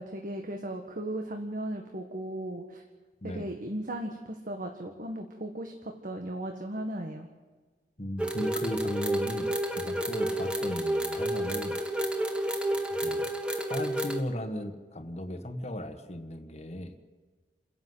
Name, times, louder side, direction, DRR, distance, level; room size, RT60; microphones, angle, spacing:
voice 1, 0.0-2.8 3.2-7.3, right 1 dB, 50° right, 3 dB, 1.6 m, -36 dB
voice 2, 3.2-3.5 8.0-11.8 13.0-13.3 13.7-17.0, left 1 dB, 40° left, 8 dB, 1.6 m, -36 dB
sound 1, 8.2-14.2, right 1 dB, 5° right, 1.8 m, -30 dB
29.5 x 11.0 x 7.9 m, 1.4 s
head